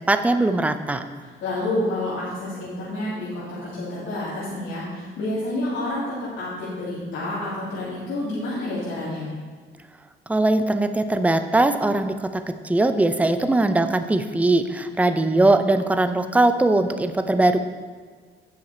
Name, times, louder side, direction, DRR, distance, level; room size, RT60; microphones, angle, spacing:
voice 1, 0.1-1.1 10.3-17.6, right 2 dB, 5° right, 9 dB, 0.5 m, -20 dB
voice 2, 1.2-9.3, left 1 dB, 75° left, -11 dB, 2.9 m, -29 dB
9.3 x 7.4 x 4.3 m, 1.5 s
cardioid pair, 90°, 20 cm